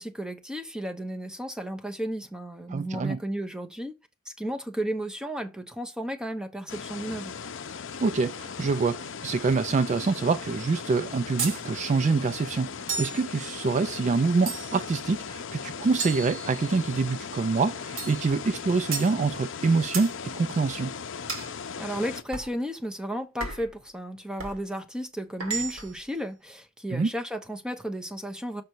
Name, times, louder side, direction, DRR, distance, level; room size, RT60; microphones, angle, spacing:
voice 1, 0.0-3.9 4.3-7.3 21.8-28.6, equal, 5° right, 1.0 m, -33 dB
voice 2, 2.7-3.2 8.0-20.9 26.9-27.1, right 4 dB, 35° right, 0.3 m, -26 dB
sound 1, 6.7-22.2, left 6 dB, 60° left, 0.6 m, -38 dB
sound 2, 11.4-11.6 12.9-13.2 14.5-14.9 16.0-16.9 18.0-18.2 18.9-19.1 19.9-20.1 21.3-21.5 22.3-22.5 23.4-23.7 24.4-24.6 25.4-26.0, right 4 dB, 80° right, 2.5 m, -34 dB
6.6 x 5.2 x 4.5 m
head